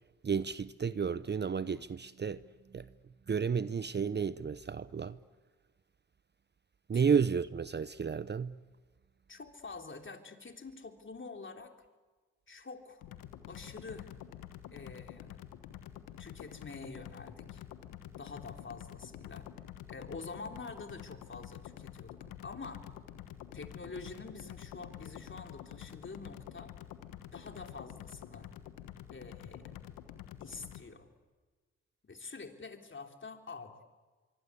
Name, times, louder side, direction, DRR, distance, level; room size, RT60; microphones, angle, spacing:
voice 1, 0.2-2.4 2.7-2.9 3.3-5.2 6.9-8.5, right 6 dB, 35° right, 0.7 m, -32 dB
voice 2, 9.3-11.7 12.5-13.0 13.4-14.1 14.7-15.3 16.2-17.6 18.2-19.5 19.9-22.8 23.5-26.7 27.3-28.5 29.1-29.7 30.4-31.1 32.0-33.8, left 4 dB, 35° left, 3.4 m, -47 dB
sound 1, 13.0-30.8, left 11 dB, 85° left, 1.3 m, -48 dB
25.0 x 24.0 x 8.3 m
hypercardioid pair, 45°, 32 cm